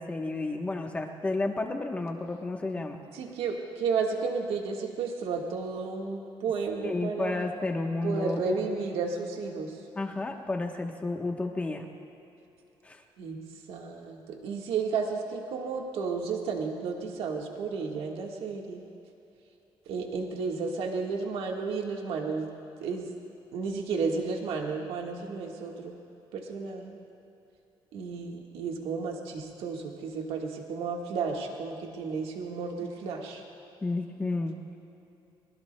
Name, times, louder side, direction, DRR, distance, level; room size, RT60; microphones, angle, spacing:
voice 1, 0.0-3.0 6.8-8.6 9.9-11.8 12.8-13.0 33.8-34.6, left 2 dB, 15° left, 3 dB, 1.0 m, -31 dB
voice 2, 3.1-7.5 8.0-9.8 13.2-13.4 13.7-18.9 19.8-22.5 22.8-23.1 23.5-26.0 26.3-27.0 27.9-33.4, right 5 dB, 85° right, 1 dB, 1.5 m, -32 dB
23.0 x 21.0 x 2.2 m, 3.0 s
cardioid pair, 175°, 10 cm